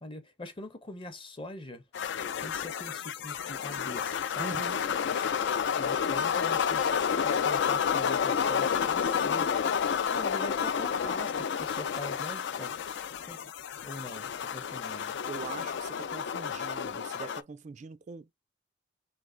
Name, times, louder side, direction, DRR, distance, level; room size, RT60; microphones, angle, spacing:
voice 1, 0.0-1.8 2.4-4.6 5.8-6.8 7.2-9.5 10.1-12.8 13.2-13.5 13.8-15.2, left 1 dB, 30° left, 0.7 m, -43 dB
sound 1, 1.9-17.4, left 7 dB, 65° left, 0.4 m, -30 dB
voice 2, 4.4-4.9 15.3-18.3, right 5 dB, 40° right, 0.3 m, -43 dB
3.3 x 3.2 x 3.7 m
head